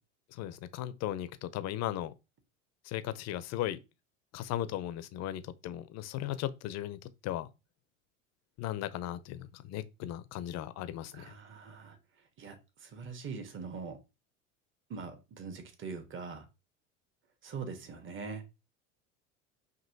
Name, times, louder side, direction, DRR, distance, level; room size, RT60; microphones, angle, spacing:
voice 1, 0.3-2.1 2.8-3.8 4.3-7.5 8.6-11.3, left 12 dB, 45° left, 0.6 m, -37 dB
voice 2, 11.1-12.0 12.4-12.6 12.8-14.0 14.9-16.5 17.4-18.4, right 5 dB, 30° right, 1.2 m, -42 dB
5.3 x 2.8 x 2.7 m
hypercardioid pair, 80°, 38 cm